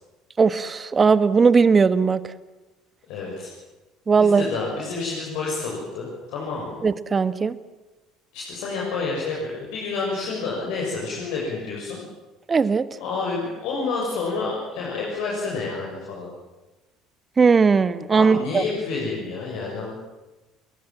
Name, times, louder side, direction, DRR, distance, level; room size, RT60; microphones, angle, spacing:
voice 1, 0.4-2.2 4.1-4.5 6.8-7.5 12.5-12.9 17.4-18.6, right 5 dB, 30° right, 14 dB, 1.4 m, -18 dB
voice 2, 3.1-3.5 4.2-6.8 8.3-12.0 13.0-16.3 18.1-19.9, left 4 dB, 65° left, -3 dB, 6.8 m, -29 dB
29.0 x 21.5 x 7.6 m, 1.1 s
figure-of-eight pair, 60°, 0 cm